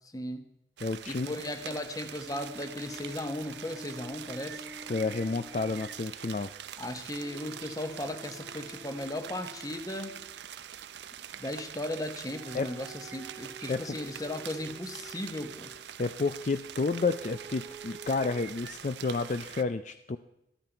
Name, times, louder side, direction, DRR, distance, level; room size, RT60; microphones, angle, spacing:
voice 1, 0.1-0.5 1.1-4.7 6.8-10.2 11.4-15.7, left 1 dB, 20° left, 8 dB, 1.0 m, -37 dB
voice 2, 0.8-1.3 4.9-6.5 12.5-12.7 13.7-13.8 16.0-20.2, left 3 dB, 40° left, 10 dB, 0.4 m, -30 dB
sound 1, 0.8-19.6, right 9 dB, 65° right, 0.6 m, -44 dB
sound 2, 2.3-6.0 7.2-10.3 12.3-15.8 16.9-18.5, right 1 dB, 10° right, 1.1 m, -48 dB
13.0 x 13.0 x 4.5 m, 0.86 s
head